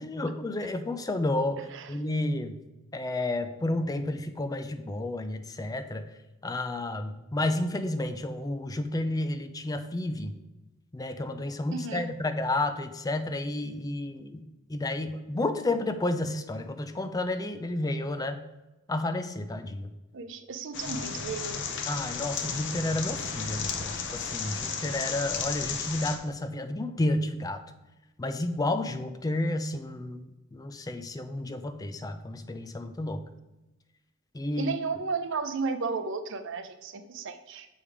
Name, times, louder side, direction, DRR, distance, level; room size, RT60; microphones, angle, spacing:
voice 1, 0.0-1.6 1.9-2.5 2.9-6.0 6.4-10.3 10.9-18.5 18.9-19.9 21.9-27.6 28.2-33.2 34.3-34.7, left 2 dB, 15° left, 9 dB, 0.4 m, -31 dB
voice 2, 11.7-12.1 20.1-21.6 34.6-37.7, right 4 dB, 60° right, 10 dB, 0.6 m, -33 dB
sound 1, 20.7-26.2, left 5 dB, 60° left, 0.9 m, -33 dB
7.1 x 5.1 x 4.8 m, 1.0 s
head